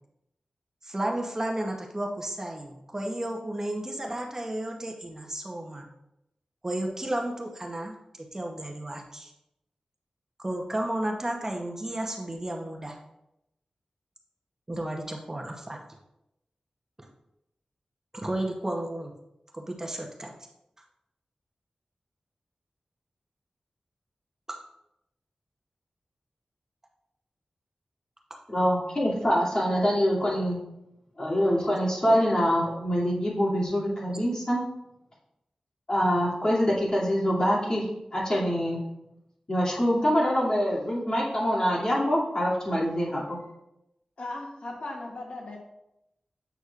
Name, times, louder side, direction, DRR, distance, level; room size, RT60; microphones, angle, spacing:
voice 1, 0.8-5.9 6.6-9.3 10.4-13.0 14.7-15.8 17.0-17.1 18.1-19.1 19.5-20.3 24.5-24.6, right 1 dB, 25° right, 1 dB, 0.8 m, -33 dB
voice 2, 28.5-30.6 31.2-34.6 35.9-38.8 39.5-43.4, equal, 35° left, -5 dB, 2.4 m, -25 dB
voice 3, 44.2-45.6, left 2 dB, 65° left, 0 dB, 0.9 m, -37 dB
8.0 x 6.0 x 2.4 m, 0.85 s
wide cardioid pair, 80°, 2 cm